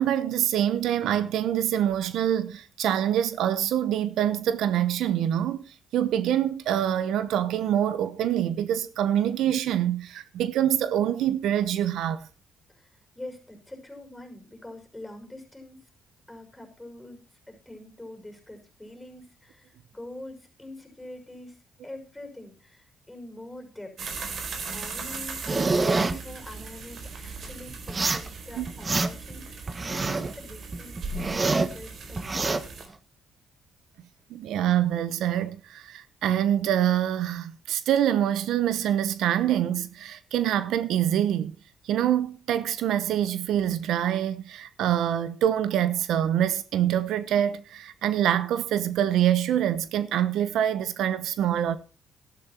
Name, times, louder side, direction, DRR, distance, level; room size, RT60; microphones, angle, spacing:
voice 1, 0.0-5.6 5.9-12.3 28.6-28.7 34.3-41.5 41.8-51.8, right 10 dB, 80° right, 1.0 m, -25 dB
voice 2, 12.7-15.8 16.3-24.2 24.7-31.0 31.2-32.7, left 1 dB, 10° left, 5.8 m, -44 dB
sound 1, 24.0-32.9, right 4 dB, 60° right, 3.9 m, -38 dB
sound 2, 25.5-26.1 27.9-28.3 28.7-29.3 29.7-30.3 30.7-31.7 32.2-32.6, right 3 dB, 30° right, 1.4 m, -26 dB
12.5 x 12.0 x 4.4 m
cardioid pair, 90°, 0 cm